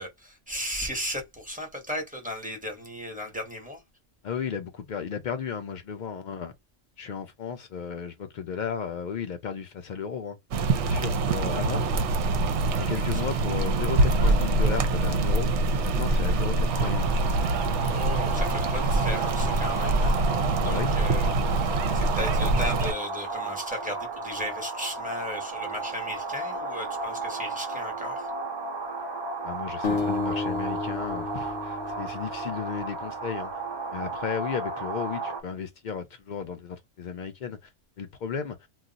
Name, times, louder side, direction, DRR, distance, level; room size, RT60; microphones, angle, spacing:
voice 1, 0.0-3.8 12.9-13.2 17.8-20.1 20.6-28.3, equal, 5° right, 0.8 m, -36 dB
voice 2, 4.2-6.5 7.0-10.4 10.8-11.9 12.8-17.0 20.6-21.0 29.4-33.5 33.9-37.7 38.0-38.7, left 6 dB, 75° left, 0.4 m, -34 dB
sound 1, 10.5-22.9, right 2 dB, 65° right, 0.8 m, -24 dB
sound 2, 16.7-35.4, right 3 dB, 40° right, 0.4 m, -34 dB
sound 3, 29.8-33.0, left 3 dB, 55° left, 0.9 m, -32 dB
2.4 x 2.3 x 3.8 m
omnidirectional pair, 1.3 m